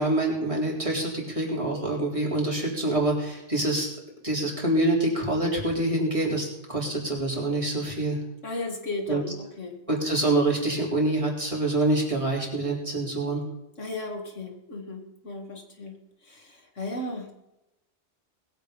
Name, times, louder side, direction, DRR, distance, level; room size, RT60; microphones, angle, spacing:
voice 1, 0.0-3.9 4.2-8.2 9.1-9.2 9.9-13.4, right 2 dB, 25° right, -3 dB, 3.9 m, -26 dB
voice 2, 8.4-9.8 13.8-17.3, left 2 dB, 85° left, 2 dB, 2.6 m, -35 dB
20.5 x 8.1 x 5.3 m, 0.92 s
omnidirectional pair, 1.2 m